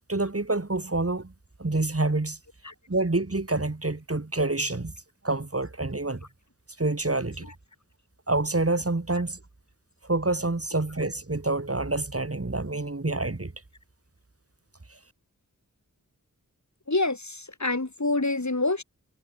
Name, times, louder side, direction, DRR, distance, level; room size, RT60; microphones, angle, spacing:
voice 1, 0.1-1.3 1.6-2.4 2.9-4.9 5.2-6.3 6.8-7.5 8.3-9.4 10.0-13.5 14.9-15.0, right 2 dB, 40° right, 2.4 m, -27 dB
voice 2, 16.9-18.8, left 2 dB, 55° left, 4.7 m, -26 dB
wide cardioid pair, 55°, 35 cm